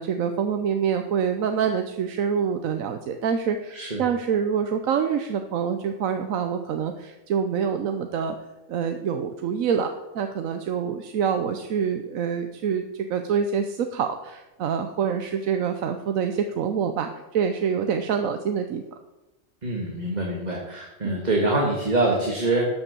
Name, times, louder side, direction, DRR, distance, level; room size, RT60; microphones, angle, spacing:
voice 1, 0.0-8.4 8.7-18.8 21.0-21.2, right 7 dB, 85° right, 7 dB, 1.2 m, -26 dB
voice 2, 3.7-4.0 19.6-22.7, right 2 dB, 35° right, -1 dB, 1.8 m, -25 dB
12.5 x 7.0 x 6.8 m, 1.0 s
omnidirectional pair, 1.4 m